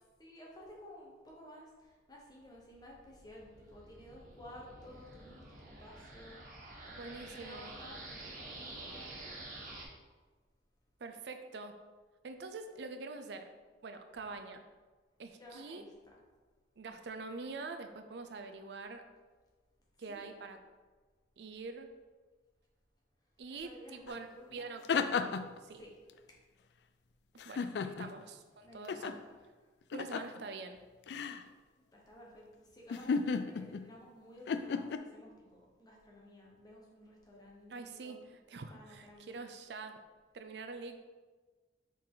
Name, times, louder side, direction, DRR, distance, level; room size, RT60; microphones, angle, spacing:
voice 1, 0.2-6.7 7.0-9.2 9.5-9.6 15.4-15.9 20.1-20.3 23.5-24.7 25.8-25.9 27.8-28.1 28.6-29.7 31.9-38.2 38.7-39.5, left 1 dB, 20° left, -3 dB, 1.2 m, -54 dB
sound 1, 2.5-9.8, right 2 dB, 50° right, 1.1 m, -49 dB
voice 2, 7.0-7.8 11.0-11.7 12.2-13.5 13.8-14.6 15.2-15.8 16.8-19.0 20.0-20.6 21.4-21.9 23.4-25.4 25.6-25.8 27.5-29.1 29.9-30.8 37.7-40.0 40.3-41.0, right 3 dB, 65° right, 7 dB, 0.4 m, -45 dB
sound 2, 24.1-24.2 24.6-25.6 27.4-28.2 28.9-29.1 29.9-30.4 31.1-31.4 32.9-33.9 34.5-35.0, left 5 dB, 65° left, 0.3 m, -34 dB
6.3 x 4.0 x 3.9 m, 1.4 s
head